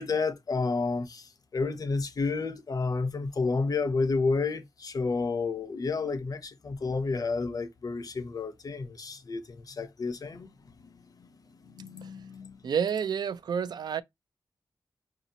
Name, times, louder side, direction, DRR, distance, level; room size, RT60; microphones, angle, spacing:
voice 1, 0.0-10.5 10.8-11.3 11.7-12.6, left 4 dB, 60° left, 0.7 m, -31 dB
voice 2, 12.6-14.0, right 7 dB, 85° right, 0.4 m, -29 dB
4.8 x 2.7 x 2.7 m
cardioid pair, 65°, 7 cm